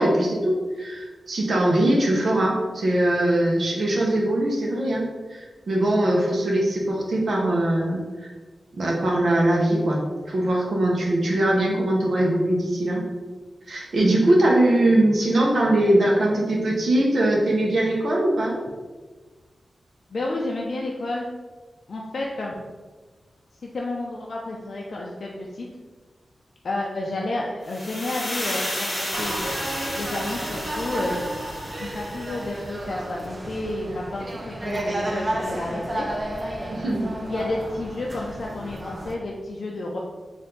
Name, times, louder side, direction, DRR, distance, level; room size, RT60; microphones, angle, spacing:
voice 1, 0.0-8.3 8.7-10.0 10.3-13.0 13.7-18.5 36.7-37.1, right 1 dB, 60° right, -2 dB, 0.8 m, -21 dB
voice 2, 20.1-21.3 21.9-22.5 23.6-25.7 26.6-29.4 29.9-31.2 31.8-36.1 37.2-40.0, left 2 dB, 60° left, -2 dB, 0.4 m, -31 dB
sound 1, 27.7-32.7, left 1 dB, 35° left, 1.3 m, -32 dB
sound 2, 29.1-39.1, right 1 dB, 25° right, 0.5 m, -32 dB
4.3 x 2.6 x 3.9 m, 1.3 s
wide cardioid pair, 155°, 0 cm